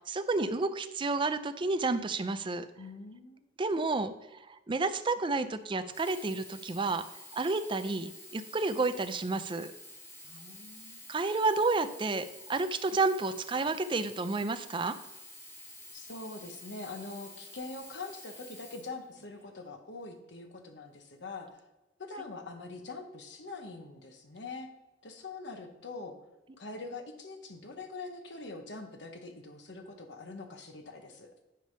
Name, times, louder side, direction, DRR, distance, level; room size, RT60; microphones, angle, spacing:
voice 1, 0.1-2.7 3.6-7.0 7.3-9.7 11.1-15.0, right 3 dB, 25° right, 10 dB, 0.4 m, -30 dB
voice 2, 2.8-3.4 10.2-11.0 15.9-21.6 22.0-24.7 25.0-26.2 26.6-31.3, left 3 dB, 70° left, 5 dB, 1.0 m, -44 dB
Sink (filling or washing), 5.8-19.6 20.3-20.4, left 1 dB, 15° left, 1.4 m, -50 dB
10.0 x 3.4 x 5.6 m, 1.0 s
head